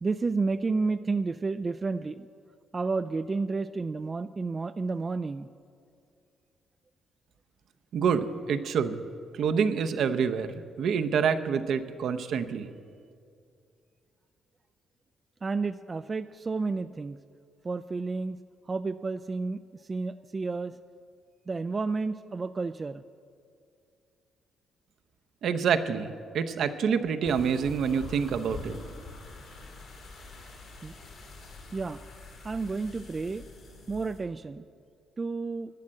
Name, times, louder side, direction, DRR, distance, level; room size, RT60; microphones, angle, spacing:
voice 1, 0.0-2.3 2.7-5.5 15.4-17.2 17.6-18.4 18.7-19.6 19.9-20.7 21.5-23.0 30.8-30.9 31.7-32.0 32.4-33.4 33.9-34.6 35.2-35.7, right 4 dB, 30° right, 11 dB, 0.3 m, -31 dB
voice 2, 7.9-9.0 9.3-12.7 25.4-28.8, right 6 dB, 70° right, 9 dB, 0.7 m, -27 dB
sound 1, 27.2-34.2, left 3 dB, 65° left, 2.8 m, -45 dB
11.5 x 9.8 x 7.6 m, 2.4 s
cardioid pair, 90°, 0 cm